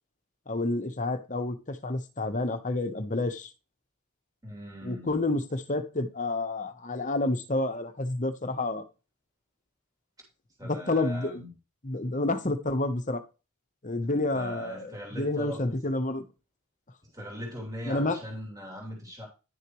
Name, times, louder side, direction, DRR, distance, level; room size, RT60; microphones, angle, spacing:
voice 1, 0.5-3.5 4.8-8.8 10.6-11.4 11.8-13.2 13.8-16.3 17.9-18.2, left 2 dB, 35° left, 1.0 m, -29 dB
voice 2, 4.4-5.1 10.6-11.5 14.0-15.7 17.0-19.3, left 1 dB, 15° right, 3.2 m, -40 dB
11.0 x 6.5 x 3.1 m
head